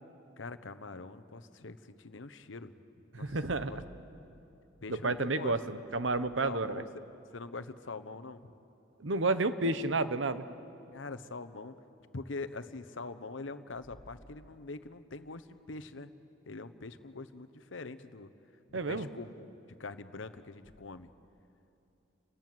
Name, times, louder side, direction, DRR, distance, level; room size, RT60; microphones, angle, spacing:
voice 1, 0.4-2.7 3.2-3.8 4.8-5.5 6.4-7.0 7.3-8.5 10.9-11.7 12.1-16.1 16.5-18.3 18.7-19.5 19.8-21.1, left 3 dB, 75° left, 12 dB, 1.0 m, -43 dB
voice 2, 3.1-3.8 5.0-6.8 9.0-10.4 18.7-19.1, right 2 dB, 75° right, 12 dB, 1.0 m, -31 dB
sound 1, 3.2-6.8 11.3-11.4 12.2-12.4 13.6-14.9 20.5-20.7, equal, 40° right, 7.1 m, -58 dB
29.0 x 19.5 x 7.8 m, 2.8 s
head